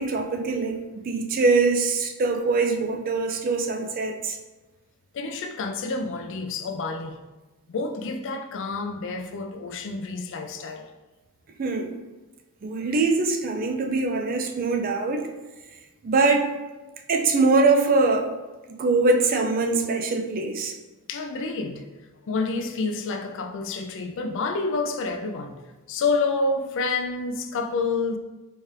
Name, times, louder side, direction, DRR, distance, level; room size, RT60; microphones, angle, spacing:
voice 1, 0.0-4.4 11.6-12.0 12.6-15.3 16.0-16.5 17.1-18.3 18.7-20.7, right 3 dB, 40° right, 4 dB, 0.4 m, -23 dB
voice 2, 5.1-7.2 7.7-10.9 21.1-21.8 22.2-25.6 25.9-28.2, left 3 dB, 60° left, 6 dB, 0.4 m, -28 dB
4.2 x 2.3 x 3.2 m, 1.2 s
head